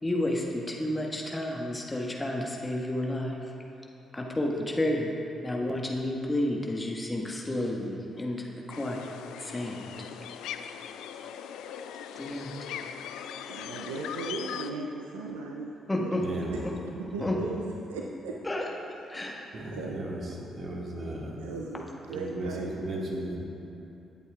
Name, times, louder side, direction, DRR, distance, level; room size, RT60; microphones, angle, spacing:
voice 1, 0.0-3.4 4.1-5.1 5.4-9.1 9.4-10.1 12.1-12.5 15.9-16.2 16.6-16.7 17.2-17.3 18.4-19.5, left 1 dB, 20° left, -1 dB, 1.6 m, -31 dB
sound 1, 8.7-14.7, left 9 dB, 70° left, 0.3 m, -40 dB
voice 2, 13.5-16.1 17.0-18.4 19.7-20.1 21.4-22.7, right 3 dB, 80° right, 0 dB, 0.5 m, -37 dB
voice 3, 16.2-16.5 17.2-17.3 19.5-20.2 20.5-21.4 22.1-23.4, right 1 dB, 50° right, -2 dB, 1.9 m, -35 dB
18.0 x 8.1 x 2.4 m, 2.9 s
figure-of-eight pair, 40°, 0 cm